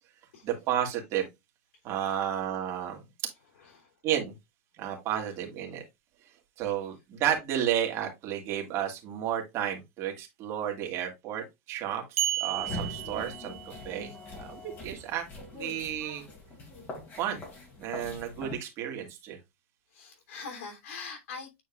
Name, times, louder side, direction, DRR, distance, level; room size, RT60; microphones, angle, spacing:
voice 1, 0.4-1.3 1.8-3.0 4.0-4.3 4.8-5.8 6.6-13.6 13.8-14.1 14.4-15.3 15.5-16.2 17.2-17.4 17.8-19.4, right 10 dB, 40° right, 2.1 m, -32 dB
voice 2, 3.6-3.9 13.9-14.2 19.9-21.6, left 4 dB, 80° left, 3.1 m, -43 dB
sound 1, 12.2-14.0, right 13 dB, 85° right, 1.1 m, -32 dB
sound 2, 12.5-18.5, left 2 dB, 25° left, 2.6 m, -42 dB
9.0 x 4.4 x 2.4 m
supercardioid pair, 135°, 7 cm